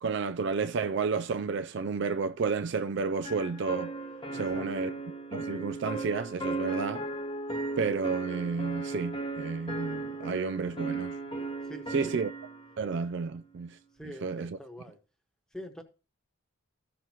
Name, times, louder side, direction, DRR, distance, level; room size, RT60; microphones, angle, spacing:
voice 1, 0.0-3.9 4.3-4.9 5.3-7.0 7.8-11.1 11.9-12.3 12.8-13.8 14.2-14.6, right 5 dB, 55° right, 0.3 m, -31 dB
sound 1, 3.2-12.7, right 3 dB, 20° left, 0.9 m, -36 dB
voice 2, 4.3-4.9 11.6-12.2 13.9-15.0 15.5-15.8, equal, 5° left, 1.1 m, -45 dB
15.0 x 6.2 x 2.9 m
head